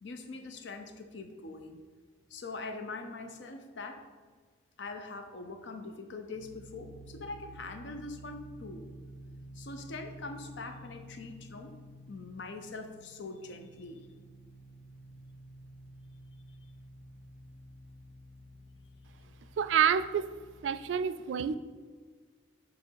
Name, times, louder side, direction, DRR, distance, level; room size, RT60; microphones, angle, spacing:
voice 1, 0.0-1.8 2.3-4.1 4.8-8.9 9.5-11.7 12.1-14.1, left 3 dB, 75° left, 6 dB, 0.6 m, -43 dB
sound 1, 6.3-21.0, right 1 dB, 60° left, 1.2 m, -51 dB
voice 2, 19.6-20.3 20.6-21.6, right 8 dB, 80° right, 12 dB, 0.3 m, -28 dB
6.9 x 3.1 x 4.6 m, 1.5 s
head